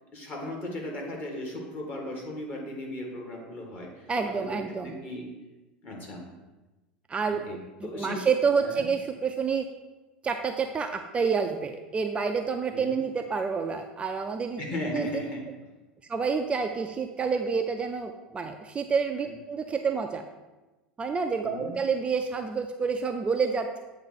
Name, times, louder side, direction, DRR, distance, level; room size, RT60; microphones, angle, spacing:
voice 1, 0.1-5.3 5.8-6.2 7.2-8.2 8.6-8.9 12.7-13.0 14.6-15.4 19.2-19.3 21.4-21.7, left 1 dB, 35° left, -1 dB, 1.9 m, -37 dB
voice 2, 4.1-5.0 7.1-9.7 10.2-14.6 14.9-15.2 16.1-20.2 21.0-23.8, right 5 dB, 20° right, 5 dB, 0.4 m, -28 dB
7.9 x 2.7 x 5.9 m, 1.1 s
figure-of-eight pair, 75°, 5 cm